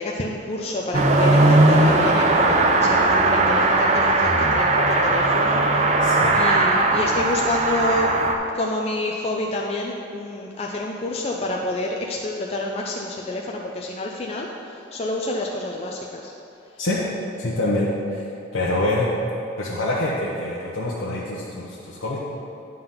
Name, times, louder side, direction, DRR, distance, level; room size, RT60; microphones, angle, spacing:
voice 1, 0.0-6.1 6.3-8.2 8.5-16.3, left 2 dB, 30° left, -1 dB, 0.4 m, -28 dB
Car passing by / Accelerating revving vroom, 0.9-8.4, right 2 dB, 35° right, 0.5 m, -18 dB
voice 2, 6.0-6.5 16.8-17.1 17.4-18.3 18.5-19.1 19.6-22.2, left 1 dB, 75° left, -7 dB, 0.9 m, -25 dB
9.3 x 3.9 x 5.6 m, 2.7 s
head